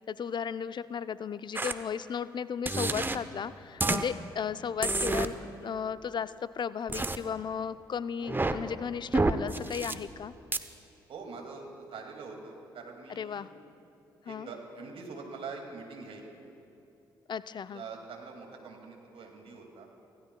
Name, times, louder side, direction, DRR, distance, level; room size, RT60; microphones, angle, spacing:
voice 1, 0.0-10.3 13.1-13.5 14.3-14.5 17.3-17.8, left 7 dB, 45° left, 15 dB, 0.5 m, -35 dB
sound 1, 1.6-1.7 2.7-3.2 3.8-4.0 4.8-5.3 6.9-7.2 8.2-8.6 9.1-9.9 10.5-10.6, right 2 dB, 20° right, 0.8 m, -28 dB
voice 2, 11.1-13.5 14.2-16.4 17.7-19.9, right 4 dB, 60° right, 2 dB, 2.2 m, -44 dB
25.5 x 16.0 x 2.3 m, 2.7 s
hypercardioid pair, 40°, 11 cm